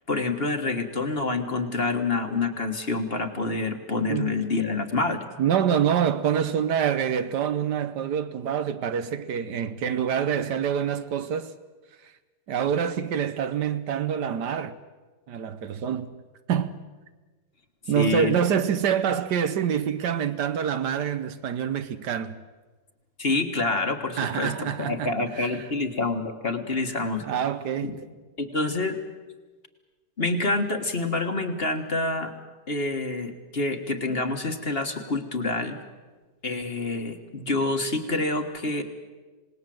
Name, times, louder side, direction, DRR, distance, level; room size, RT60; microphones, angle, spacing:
voice 1, 0.1-5.2 17.9-18.6 23.2-27.2 27.8-28.0 28.4-29.0 30.2-32.3 32.7-35.8 36.4-38.8, left 3 dB, 35° left, 1.7 m, -27 dB
voice 2, 5.4-11.5 12.5-14.8 15.3-16.1 16.5-16.8 17.9-22.4 24.2-25.7 27.2-28.0, right 8 dB, 70° right, 1.5 m, -26 dB
27.0 x 19.5 x 7.7 m
omnidirectional pair, 1.9 m